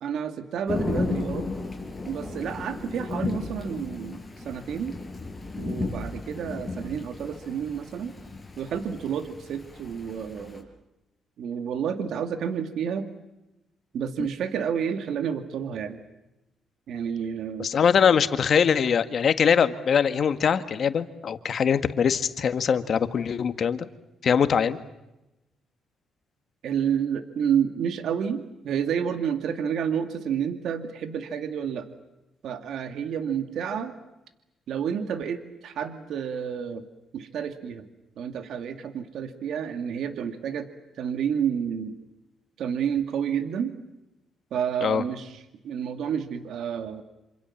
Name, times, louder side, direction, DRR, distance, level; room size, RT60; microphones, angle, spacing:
voice 1, 0.0-1.5 2.0-5.0 5.6-8.1 8.6-10.7 11.4-13.1 13.9-16.0 16.9-17.7 26.6-31.9 32.4-33.9 34.7-36.8 37.1-37.9 38.2-40.7 41.0-42.0 42.6-43.8 44.5-47.0, right 8 dB, 75° right, 8 dB, 2.3 m, -30 dB
Thunder / Rain, 0.7-10.6, left 3 dB, 15° left, 6.1 m, -34 dB
voice 2, 17.6-23.9 24.2-24.8 44.8-45.0, left 7 dB, 55° left, 10 dB, 1.7 m, -22 dB
27.5 x 27.5 x 7.3 m, 0.95 s
cardioid pair, 90°, 0 cm